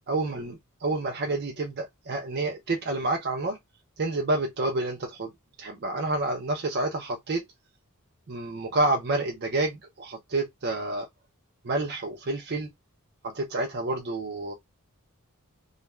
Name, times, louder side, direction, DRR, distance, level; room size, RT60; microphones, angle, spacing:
voice 1, 0.1-3.6 4.0-5.3 5.6-7.4 8.3-11.1 11.6-12.7 13.2-14.5, right 2 dB, 50° right, 0.6 m, -29 dB
2.4 x 2.2 x 3.1 m
head